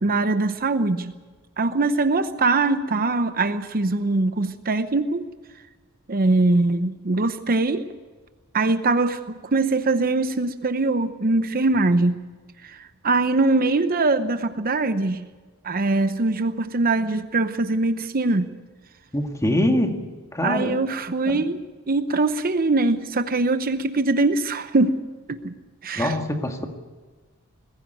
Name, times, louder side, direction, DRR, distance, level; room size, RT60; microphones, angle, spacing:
voice 1, 0.0-1.1 1.6-5.2 6.1-7.9 8.5-12.2 12.6-15.3 15.6-18.5 20.4-25.0 25.3-25.5 25.8-26.2, right 3 dB, 40° right, 10 dB, 0.8 m, -22 dB
voice 2, 19.1-20.0 20.3-20.8 21.3-21.5 25.9-26.7, left 1 dB, 15° left, 4 dB, 1.9 m, -23 dB
21.5 x 15.5 x 9.1 m, 1.4 s
head